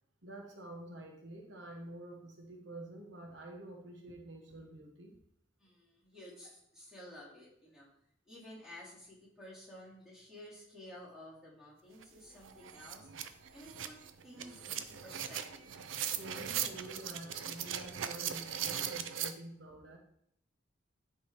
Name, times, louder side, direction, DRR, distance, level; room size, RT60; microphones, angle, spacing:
voice 1, 0.2-5.2 13.1-13.2 16.2-20.0, right 1 dB, 70° right, 1 dB, 1.2 m, -48 dB
voice 2, 5.6-7.9 8.2-13.1 13.5-15.7, left 1 dB, ahead, -8 dB, 2.9 m, -53 dB
sound 1, 12.0-12.1 12.4-19.3, right 9 dB, 85° right, 0.6 m, -39 dB
9.9 x 3.8 x 4.7 m, 0.70 s
head